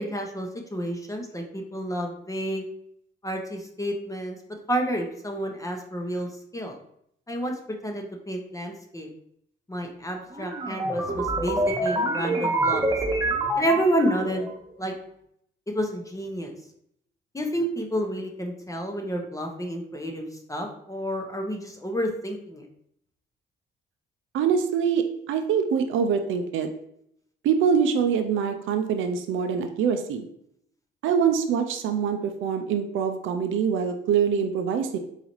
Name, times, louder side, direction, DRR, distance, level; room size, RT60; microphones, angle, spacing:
voice 1, 0.0-2.6 3.2-4.4 4.7-6.7 7.3-7.5 7.8-9.1 9.7-12.9 13.6-14.5 14.8-14.9 15.7-16.5 17.3-22.6, right 1 dB, 15° left, 2 dB, 0.7 m, -29 dB
sound 1, 10.3-14.5, right 1 dB, 20° right, 1.1 m, -26 dB
voice 2, 24.3-26.7 27.4-30.3 31.0-35.0, right 7 dB, 80° right, 6 dB, 0.5 m, -24 dB
4.0 x 3.9 x 3.0 m, 0.73 s
cardioid pair, 90°, 20 cm